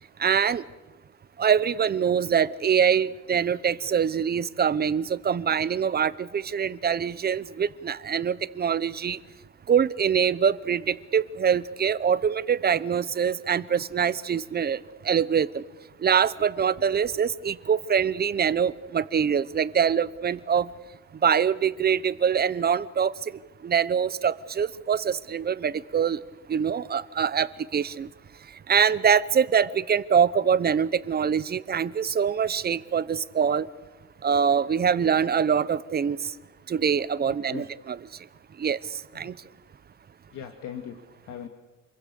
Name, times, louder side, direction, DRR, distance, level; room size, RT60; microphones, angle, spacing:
voice 1, 0.2-0.6 1.4-9.2 9.7-14.8 15.0-15.6 16.0-20.7 21.2-23.1 23.6-26.2 26.5-28.1 28.7-33.7 34.2-36.3 36.7-38.0 38.6-38.8 39.1-39.3, right 7 dB, 35° right, 17 dB, 0.8 m, -24 dB
voice 2, 37.2-37.7 39.1-39.3 40.3-41.5, left 8 dB, 80° left, 5 dB, 2.3 m, -40 dB
28.5 x 22.5 x 7.0 m, 1.1 s
cardioid pair, 130°, 30 cm